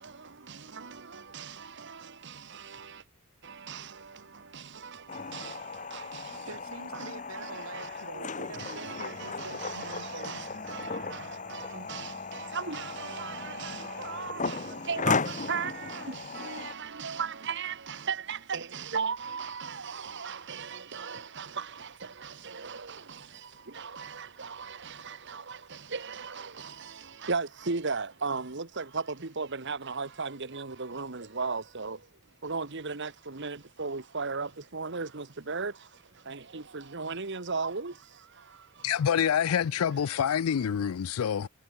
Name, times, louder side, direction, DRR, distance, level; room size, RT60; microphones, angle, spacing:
sound 1, 5.1-16.7, left 4 dB, 35° left, 1.6 m, -36 dB
voice 1, 6.2-11.1, right 3 dB, 75° right, 2.6 m, -46 dB
voice 2, 7.4-7.9 8.6-11.2 11.5-14.6 14.9-21.9 22.2-23.0 23.7-25.6 25.9-26.7 27.2-29.0 29.4-32.0 32.4-35.7 36.3-37.9, right 5 dB, 55° right, 1.4 m, -36 dB
voice 3, 38.8-41.5, left 8 dB, 85° left, 0.4 m, -27 dB
head